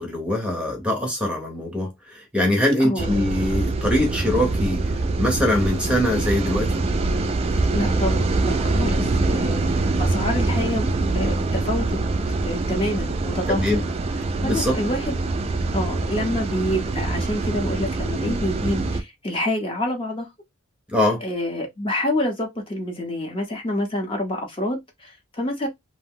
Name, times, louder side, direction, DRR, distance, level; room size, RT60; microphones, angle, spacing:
voice 1, 0.0-6.8 9.0-9.1 13.5-13.8 14.4-14.8 20.9-21.2, left 1 dB, 5° right, 0.7 m, -23 dB
voice 2, 2.8-3.1 7.6-10.9 11.1-12.0 12.4-13.7 14.4-15.1 15.7-20.3 21.2-25.7, left 1 dB, 25° left, 0.7 m, -27 dB
sound 1, 3.0-19.0, right 3 dB, 30° right, 0.3 m, -24 dB
2.6 x 2.1 x 3.5 m
head